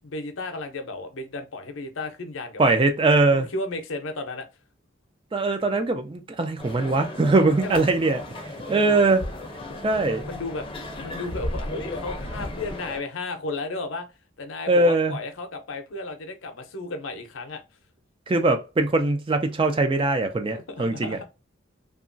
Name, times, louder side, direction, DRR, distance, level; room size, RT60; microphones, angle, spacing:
voice 1, 0.0-2.8 3.3-4.5 7.6-7.9 8.6-9.1 9.7-10.7 11.0-14.1 14.4-17.6 20.5-21.3, left 2 dB, 75° left, 0.6 m, -34 dB
voice 2, 2.6-3.5 5.3-8.2 8.7-9.2 9.8-10.2 14.7-15.1 18.3-21.2, right 2 dB, 25° right, 0.4 m, -21 dB
sound 1, 6.6-13.0, left 1 dB, 25° left, 0.6 m, -35 dB
2.9 x 2.3 x 2.5 m
head